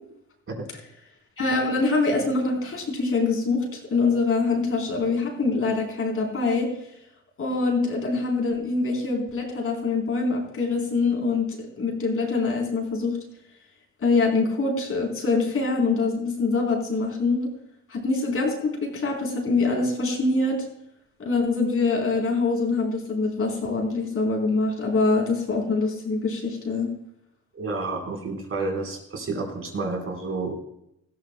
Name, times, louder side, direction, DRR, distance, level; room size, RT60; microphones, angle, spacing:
voice 1, 1.4-3.6 3.9-6.7 7.4-11.5 11.8-13.2 14.0-17.5 17.9-20.6 21.2-26.9, left 3 dB, 45° left, 0 dB, 4.0 m, -24 dB
voice 2, 27.5-30.6, right 3 dB, 45° right, 1 dB, 4.5 m, -30 dB
18.0 x 13.5 x 2.3 m, 0.78 s
cardioid pair, 90°, 30 cm